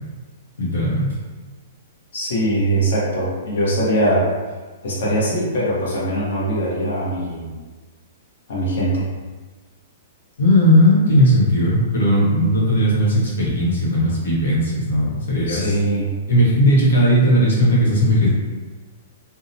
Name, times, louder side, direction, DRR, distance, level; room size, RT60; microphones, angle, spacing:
voice 1, 0.6-1.1 10.4-15.8 16.3-18.3, equal, 90° left, -5 dB, 1.0 m, -17 dB
voice 2, 2.1-4.3 4.8-7.5 8.5-9.1 15.5-16.1, right 1 dB, 65° left, -6 dB, 0.9 m, -21 dB
2.7 x 2.0 x 2.7 m, 1.3 s
hypercardioid pair, 170°, 0 cm